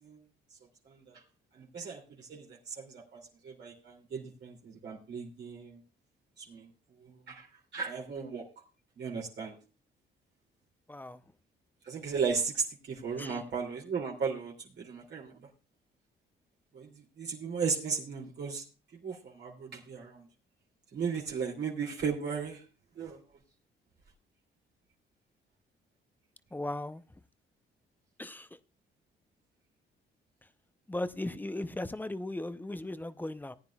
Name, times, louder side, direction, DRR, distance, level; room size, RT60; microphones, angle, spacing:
voice 1, 0.9-1.2 1.5-5.8 6.4-6.7 7.0-7.5 7.7-8.5 9.0-9.6 11.9-15.3 16.7-18.6 19.0-20.3 20.9-22.6 23.0-23.2, right 5 dB, 60° right, 2.9 m, -36 dB
voice 2, 10.9-11.2 13.2-13.4 26.5-27.0 28.2-28.6 30.9-33.6, left 1 dB, 10° left, 0.7 m, -37 dB
19.0 x 9.6 x 2.4 m
cardioid pair, 90°, 20 cm